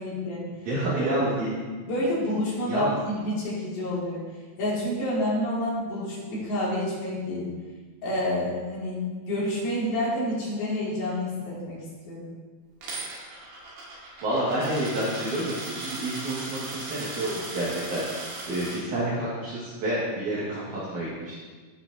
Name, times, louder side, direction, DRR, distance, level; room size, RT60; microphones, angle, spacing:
voice 1, 0.0-0.5 1.9-4.2 4.6-7.5 8.0-12.3, left 1 dB, 85° left, -7 dB, 4.6 m, -28 dB
voice 2, 0.6-1.5 2.6-2.9 14.2-18.0 18.5-21.3, right 1 dB, 60° right, -9 dB, 3.2 m, -29 dB
Coin (dropping), 12.8-18.8, right 2 dB, 85° right, 3.8 m, -37 dB
15.5 x 6.1 x 2.8 m, 1.4 s
omnidirectional pair, 4.1 m